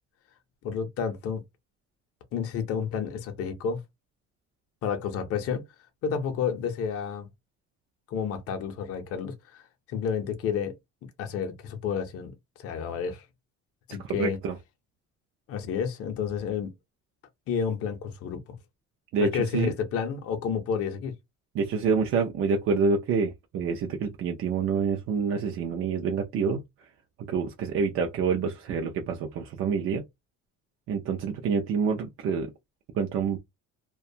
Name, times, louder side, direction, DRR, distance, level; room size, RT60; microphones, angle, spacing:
voice 1, 0.6-1.4 2.3-3.8 4.8-5.6 6.0-7.3 8.1-10.8 11.2-12.3 12.6-13.2 13.9-14.4 15.5-16.7 17.5-18.4 19.2-21.1, left 7 dB, 50° left, 0.6 m, -30 dB
voice 2, 14.0-14.6 19.1-19.7 21.5-26.6 27.2-30.0 30.9-32.5 32.9-33.4, right 5 dB, 45° right, 0.4 m, -27 dB
2.4 x 2.2 x 2.7 m
cardioid pair, 160°, 30 cm